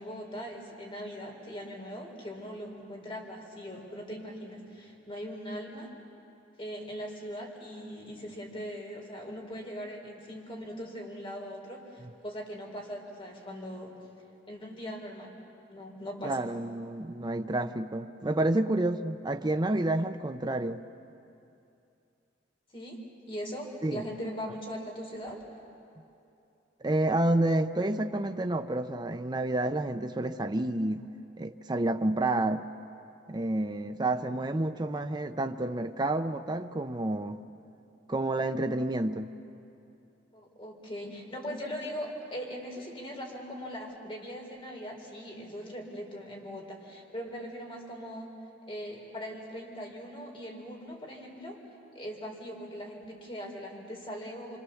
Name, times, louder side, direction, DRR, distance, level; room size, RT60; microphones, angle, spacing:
voice 1, 0.0-5.9 6.6-14.0 14.5-15.3 15.7-16.4 22.7-23.0 23.3-25.4 40.3-48.3 48.7-51.6 51.9-54.6, equal, 30° left, 0 dB, 4.2 m, -40 dB
voice 2, 16.2-20.8 23.8-24.0 26.8-31.1 31.4-32.7 33.3-37.4 38.1-39.3, right 2 dB, 25° right, 7 dB, 0.6 m, -29 dB
26.5 x 25.5 x 7.1 m, 2.7 s
head